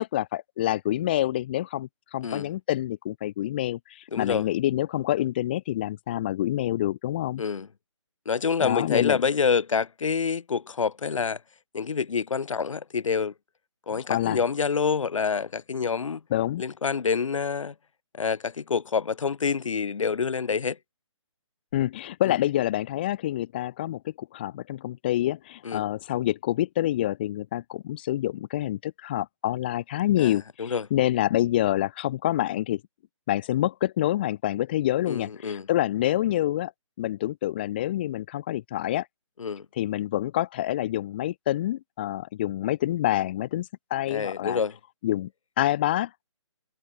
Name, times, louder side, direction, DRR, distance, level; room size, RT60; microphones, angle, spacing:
voice 1, 0.0-7.4 8.6-9.2 14.1-14.4 16.3-16.6 21.7-32.8 33.3-36.7 37.0-39.1 39.8-44.6 45.0-45.3 45.6-46.1, left 14 dB, 20° left, 0.6 m, -27 dB
voice 2, 4.1-4.5 7.4-7.7 8.3-11.4 11.7-13.3 13.9-16.2 16.6-17.7 18.1-20.8 22.3-22.4 25.6-25.8 30.2-30.9 35.1-35.7 39.4-39.7 44.1-44.8, left 5 dB, 85° left, 0.7 m, -27 dB
hypercardioid pair, 165°, 16 cm